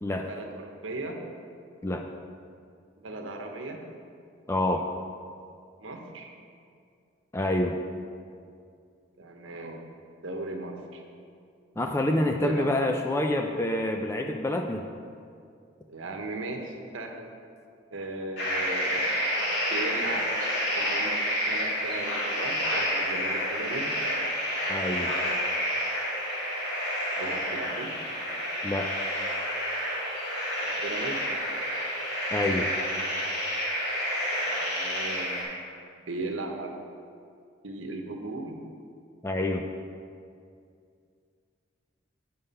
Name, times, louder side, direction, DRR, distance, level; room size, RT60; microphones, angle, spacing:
voice 1, 0.3-1.2 3.0-3.8 5.8-6.3 9.2-9.8 10.2-11.0 12.4-12.7 15.9-17.3 17.9-19.1 19.7-20.3 20.8-21.2 21.5-23.9 27.2-27.9 30.6-31.2 34.4-35.3 36.1-36.7 37.6-38.6, right 2 dB, 80° right, 3 dB, 1.0 m, -37 dB
voice 2, 4.5-4.9 7.3-7.8 11.8-14.9 24.7-25.1 28.6-28.9 32.3-32.7 39.2-39.7, left 1 dB, 15° left, 3 dB, 0.3 m, -27 dB
sound 1, 18.4-35.4, equal, 55° left, 2.4 m, -29 dB
8.2 x 5.7 x 5.5 m, 2.3 s
head